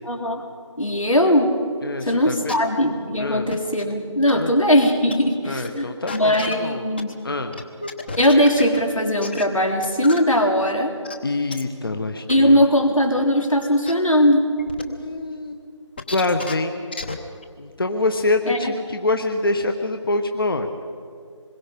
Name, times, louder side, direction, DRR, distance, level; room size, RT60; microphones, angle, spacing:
voice 1, 0.1-0.4 0.8-1.5 2.0-5.8 6.1-7.1 8.2-10.9 12.3-14.5 18.5-18.7, equal, 90° left, 3 dB, 3.6 m, -19 dB
voice 2, 1.8-2.6 3.2-3.5 4.3-4.6 5.4-6.9 7.2-7.5 11.2-12.6 14.9-15.6 16.1-16.9 17.6-20.7, left 2 dB, 45° left, 6 dB, 1.3 m, -25 dB
sound 1, 2.5-2.6 3.5-3.9 4.3-4.4 4.7-4.8 5.1-5.2 5.6-5.8 6.1-7.1 7.5-8.8 9.2-9.4 9.8-10.2 10.7-10.8 11.0-11.1 11.5-11.6 12.3-12.4 13.0-13.1 13.6-13.9 14.6-14.8 16.0-16.5 16.9-17.1 17.4-17.5, left 3 dB, 20° left, 0.9 m, -32 dB
25.5 x 21.5 x 5.2 m, 2.2 s
figure-of-eight pair, 165°, 16 cm